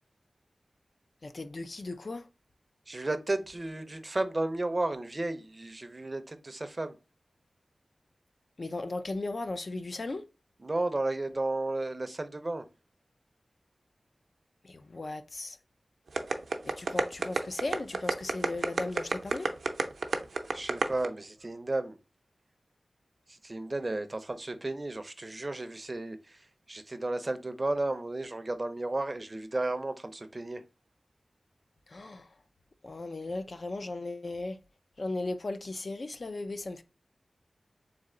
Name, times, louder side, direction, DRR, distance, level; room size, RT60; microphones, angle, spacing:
voice 1, 1.2-2.3 8.6-10.3 14.6-15.6 16.6-19.5 31.9-32.3 32.8-34.6 35.0-36.8, left 2 dB, 50° left, 0.4 m, -36 dB
voice 2, 2.9-7.0 10.6-12.7 20.5-22.0 23.3-30.6, right 2 dB, 30° right, 0.5 m, -33 dB
sound 1, 16.1-21.1, right 4 dB, 90° right, 0.5 m, -28 dB
3.7 x 3.2 x 3.7 m
wide cardioid pair, 100°, 0 cm